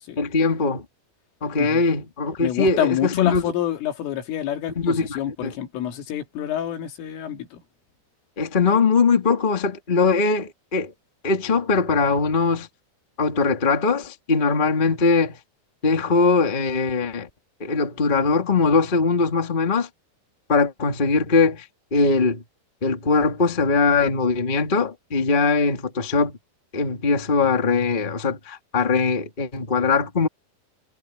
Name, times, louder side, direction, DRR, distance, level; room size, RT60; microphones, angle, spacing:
voice 1, 0.2-0.8 1.4-3.4 4.7-5.5 8.4-10.9 11.2-12.7 13.2-15.4 15.8-17.3 17.6-19.9 20.5-21.6 21.9-22.4 22.8-26.4 26.7-30.3, left 4 dB, 60° left, 0.5 m, -21 dB
voice 2, 2.4-7.6, left 11 dB, 80° left, 5.3 m, -27 dB
omnidirectional pair, 5.7 m